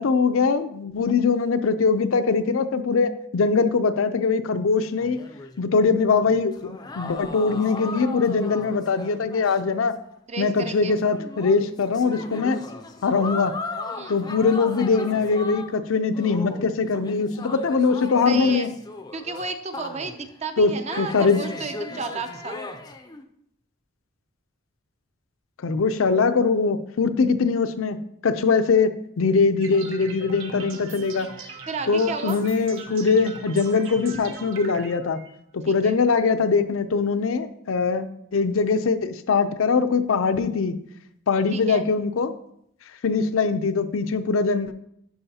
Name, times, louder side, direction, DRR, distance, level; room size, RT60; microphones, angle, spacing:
voice 1, 0.0-5.2 5.6-9.9 10.4-12.6 13.0-13.5 14.1-18.7 20.6-20.7 21.0-21.5 25.6-28.0 28.2-28.9 29.2-31.3 31.9-35.2 35.5-38.1 38.3-40.8 41.3-42.3 43.0-44.7, left 4 dB, 75° left, 11 dB, 0.5 m, -22 dB
sound 1, 5.0-9.7 10.0-10.1 10.6-15.8 16.1-20.3 20.9-23.2, left 3 dB, 20° left, 0.4 m, -37 dB
voice 2, 10.3-10.9 13.9-14.2 18.3-18.7 19.1-22.6 28.5-28.6 31.7-32.4 35.7-36.0 41.5-41.9, right 4 dB, 30° right, 8 dB, 0.5 m, -33 dB
sound 2, 29.6-35.3, right 3 dB, 50° right, 2.3 m, -46 dB
sound 3, 29.6-34.9, right 5 dB, 70° right, 0.7 m, -41 dB
11.0 x 4.7 x 2.8 m, 0.74 s
head